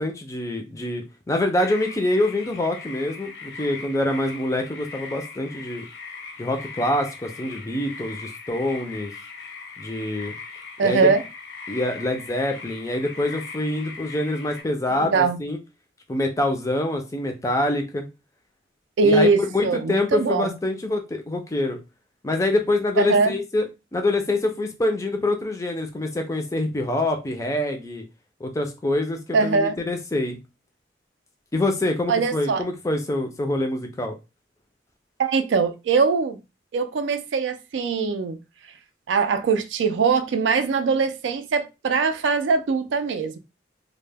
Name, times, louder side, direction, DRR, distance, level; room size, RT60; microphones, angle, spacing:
voice 1, 0.0-5.9 6.4-9.1 9.8-10.4 10.8-11.1 11.7-15.6 16.1-18.1 19.0-21.8 22.2-23.6 23.9-28.0 28.4-30.4 31.5-34.1, left 1 dB, 15° left, 0.3 m, -25 dB
sound 1, 1.6-14.6, left 4 dB, 80° left, 0.7 m, -39 dB
voice 2, 10.8-11.2 14.9-15.4 19.0-20.6 23.0-23.3 29.3-29.8 32.1-32.6 35.2-36.4 36.7-38.4 39.1-43.4, right 4 dB, 80° right, 0.4 m, -22 dB
2.1 x 2.0 x 3.3 m
head